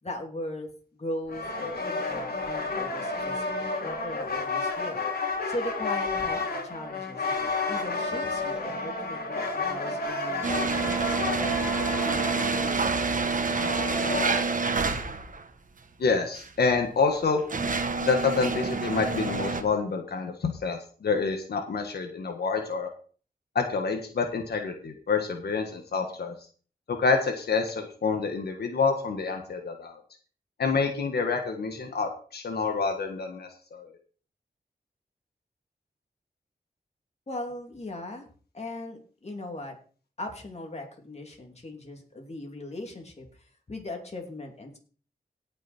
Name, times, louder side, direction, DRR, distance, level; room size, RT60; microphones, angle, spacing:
voice 1, 0.0-5.0 5.5-14.5 37.3-38.3 38.5-39.8 40.2-44.8, left 1 dB, 40° left, 2 dB, 2.8 m, -39 dB
sound 1, 1.3-14.4, left 3 dB, 75° left, 3.0 m, -31 dB
sound 2, 10.4-15.4 16.4-16.5 17.2-19.6, right 4 dB, 55° right, 1.3 m, -28 dB
voice 2, 16.0-17.4 18.0-22.9 23.5-26.3 26.9-30.0 30.6-33.9, left 4 dB, 90° left, 4 dB, 1.5 m, -27 dB
17.5 x 6.3 x 4.4 m, 0.41 s
wide cardioid pair, 85°, 16 cm